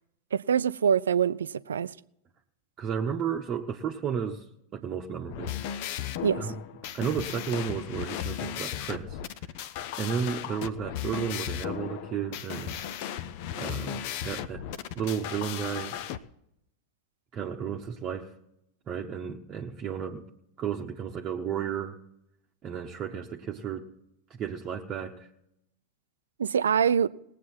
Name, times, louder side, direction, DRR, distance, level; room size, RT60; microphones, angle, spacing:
voice 1, 0.3-1.9 6.2-6.5 26.4-27.1, right 7 dB, 65° right, 0.4 m, -24 dB
voice 2, 2.8-4.5 4.7-5.5 6.4-6.5 6.9-9.2 10.0-12.7 13.6-14.6 14.9-16.0 17.3-18.3 18.9-20.3 20.6-22.0 22.6-23.9 24.3-25.3, right 7 dB, 30° right, 1.0 m, -33 dB
sound 1, 5.2-16.2, left 10 dB, 45° left, 0.7 m, -36 dB
20.0 x 8.3 x 4.4 m
figure-of-eight pair, 90°, 0 cm